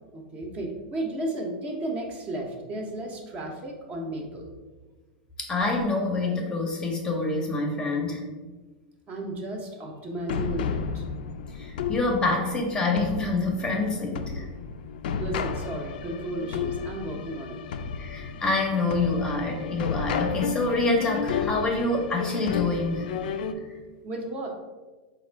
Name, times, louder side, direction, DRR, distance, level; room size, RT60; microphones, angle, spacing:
voice 1, 0.1-4.5 9.1-11.0 15.2-17.6 24.0-24.5, right 1 dB, 25° right, 1 dB, 0.6 m, -34 dB
voice 2, 5.4-8.2 11.5-14.4 18.0-23.0, left 3 dB, 15° left, 1 dB, 0.6 m, -26 dB
sound 1, 10.3-23.5, left 6 dB, 75° left, 0.3 m, -32 dB
4.1 x 2.4 x 4.4 m, 1.3 s
supercardioid pair, 150°, 5 cm